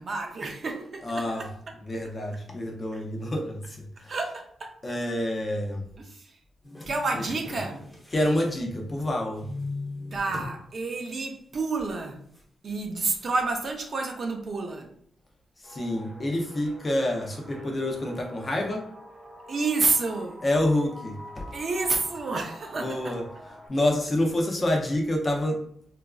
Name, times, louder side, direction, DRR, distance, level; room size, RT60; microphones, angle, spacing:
voice 1, 0.0-1.5 4.1-4.7 6.0-6.3 6.9-7.8 10.1-12.2 12.6-14.9 19.5-20.4 21.5-23.2, right 3 dB, 40° right, 0.5 m, -29 dB
voice 2, 1.0-1.5 1.8-4.1 4.8-5.8 8.1-9.5 15.6-18.9 20.4-21.5 22.8-25.6, left 1 dB, 25° left, 0.6 m, -28 dB
sound 1, 6.6-9.1 9.4-10.6 11.0-11.1 12.3-12.4, left 2 dB, 5° left, 0.9 m, -39 dB
sound 2, 15.6-23.7, equal, 25° right, 0.9 m, -46 dB
4.0 x 2.4 x 2.3 m
wide cardioid pair, 150°, 0 cm